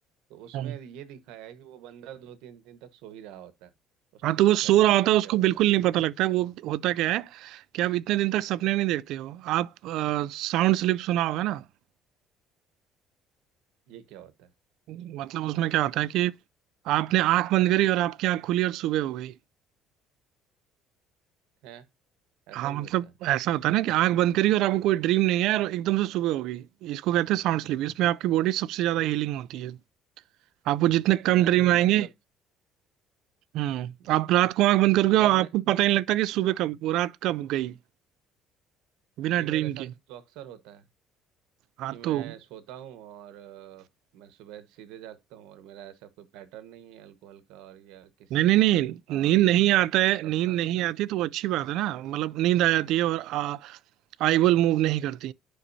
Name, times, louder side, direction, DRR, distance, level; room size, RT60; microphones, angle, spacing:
voice 1, 0.3-3.7 4.1-4.7 5.0-5.7 13.9-14.5 21.6-21.9 22.5-23.1 31.2-32.1 34.0-34.2 35.1-35.5 36.4-36.6 39.3-40.9 41.9-43.9 44.1-48.5 49.1-49.6 50.2-50.8, right 11 dB, 90° right, 1.2 m, -46 dB
voice 2, 4.2-11.6 14.9-16.3 16.9-19.3 22.5-29.8 30.7-32.1 33.5-37.7 39.2-39.9 41.8-42.3 48.3-53.8 54.2-55.3, right 15 dB, 60° right, 0.4 m, -24 dB
10.5 x 5.5 x 2.7 m
cardioid pair, 175°, 0 cm